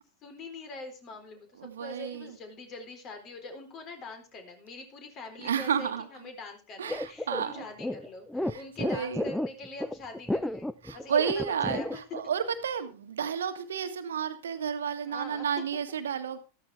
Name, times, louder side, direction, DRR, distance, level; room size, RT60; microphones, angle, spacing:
voice 1, 0.2-12.0 15.0-15.5, left 3 dB, 35° left, 6 dB, 4.1 m, -44 dB
voice 2, 1.6-2.3 5.4-6.1 6.8-7.6 8.5-9.3 10.8-16.4, right 7 dB, 65° right, 9 dB, 1.6 m, -31 dB
sound 1, 6.9-12.2, left 1 dB, 5° left, 0.6 m, -32 dB
14.0 x 13.5 x 3.5 m, 0.32 s
figure-of-eight pair, 90°, 0 cm